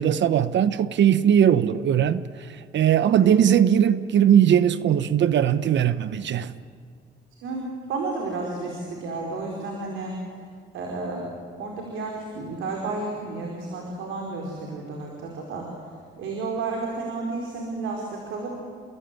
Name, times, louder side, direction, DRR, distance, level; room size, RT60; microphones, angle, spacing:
voice 1, 0.0-6.5, right 9 dB, 65° right, 1.0 m, -20 dB
voice 2, 7.4-10.2 10.7-11.2 11.6-15.7 16.2-18.5, right 3 dB, 85° right, 4.9 m, -32 dB
29.0 x 21.0 x 9.3 m
cardioid pair, 90°, 20 cm